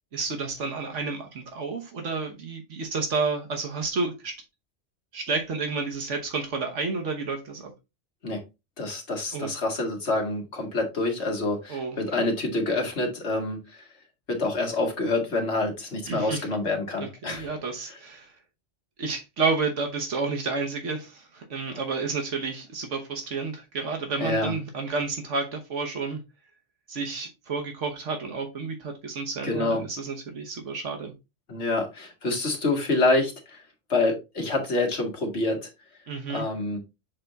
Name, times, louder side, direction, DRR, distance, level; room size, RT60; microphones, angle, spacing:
voice 1, 0.1-4.4 5.1-7.7 9.3-9.5 11.7-12.3 16.1-16.5 17.0-18.3 19.0-26.2 26.9-31.1 36.1-36.4, right 4 dB, 80° right, 1.4 m, -30 dB
voice 2, 8.8-13.6 14.3-17.5 24.2-24.5 29.4-29.8 31.5-33.6 33.9-35.7 36.3-36.8, left 2 dB, 65° left, 2.0 m, -27 dB
7.3 x 3.5 x 4.0 m
omnidirectional pair, 1.2 m